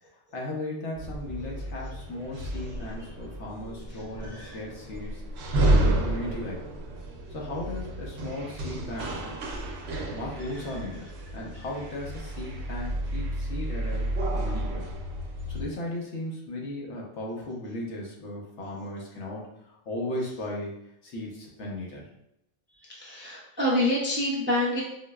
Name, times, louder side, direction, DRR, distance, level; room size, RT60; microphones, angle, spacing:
voice 1, 0.3-5.2 5.7-6.7 7.3-9.3 10.1-11.1 11.3-14.1 14.3-14.9 15.5-20.7 21.0-22.1, left 1 dB, 80° left, -2 dB, 1.1 m, -36 dB
sound 1, 1.0-15.7, right 1 dB, 70° right, 0.8 m, -31 dB
voice 2, 23.0-24.8, left 1 dB, 20° right, -5 dB, 0.3 m, -26 dB
4.3 x 2.1 x 2.2 m, 0.80 s
omnidirectional pair, 1.2 m